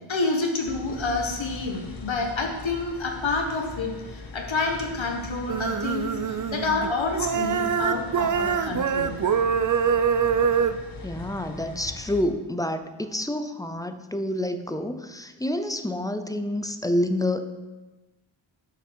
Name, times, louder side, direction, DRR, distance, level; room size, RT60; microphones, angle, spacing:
voice 1, 0.1-9.2, left 3 dB, 70° left, 2 dB, 1.4 m, -28 dB
sound 1, 0.7-12.2, left 3 dB, 45° left, 0.9 m, -41 dB
sound 2, 5.5-6.9 7.2-10.8, right 7 dB, 45° right, 0.4 m, -24 dB
voice 2, 11.0-17.4, left 1 dB, 10° left, 9 dB, 0.5 m, -28 dB
7.8 x 5.9 x 4.5 m, 1.1 s
wide cardioid pair, 65°, 48 cm